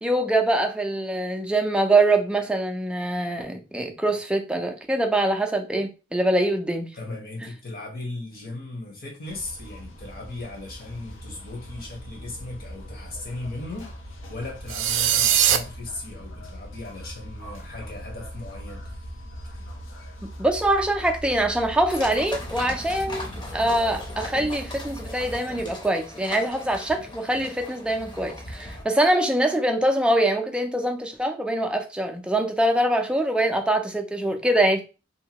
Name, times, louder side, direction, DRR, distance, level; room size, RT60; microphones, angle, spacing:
voice 1, 0.0-6.9 20.4-23.3 23.5-34.8, right 1 dB, 5° right, 0.3 m, -24 dB
voice 2, 6.9-13.9 14.3-19.1, left 2 dB, 50° left, 1.0 m, -37 dB
sound 1, 9.3-25.3, equal, 85° left, 0.6 m, -40 dB
sound 2, 14.7-15.6, right 10 dB, 75° right, 0.4 m, -20 dB
sound 3, 21.9-28.8, left 2 dB, 25° left, 0.7 m, -38 dB
2.8 x 2.2 x 2.8 m
head